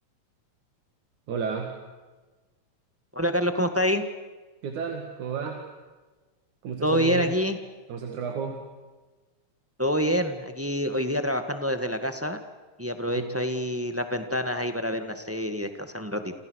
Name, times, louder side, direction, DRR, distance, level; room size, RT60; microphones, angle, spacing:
voice 1, 1.3-1.8 4.6-5.7 6.6-7.4 7.9-8.7 13.1-13.4, right 6 dB, 80° right, 3 dB, 3.6 m, -32 dB
voice 2, 3.1-4.0 6.8-7.6 9.8-12.4 12.8-16.3, equal, 5° right, 7 dB, 1.1 m, -27 dB
29.0 x 28.5 x 6.5 m, 1.3 s
omnidirectional pair, 3.4 m